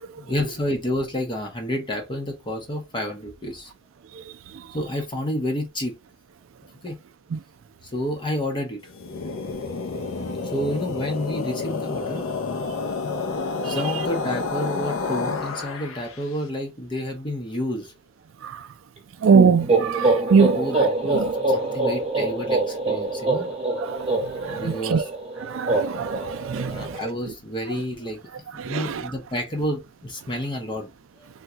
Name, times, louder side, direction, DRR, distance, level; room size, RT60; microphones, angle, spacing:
voice 1, 0.2-3.7 4.7-6.0 6.8-7.0 7.8-8.9 10.5-12.2 13.6-17.9 20.6-23.5 24.5-25.1 26.6-28.2 28.7-30.9 31.2-31.3, left 1 dB, 25° left, 0.7 m, -29 dB
sound 1, 8.8-16.2, left 4 dB, 75° left, 0.6 m, -29 dB
voice 2, 19.2-20.6 21.1-21.2 23.8-24.1 24.4-25.1 25.4-26.9 28.6-29.0, right 5 dB, 70° right, 0.4 m, -22 dB
sound 2, 19.3-27.0, right 3 dB, 30° right, 1.0 m, -25 dB
3.5 x 2.2 x 2.8 m
head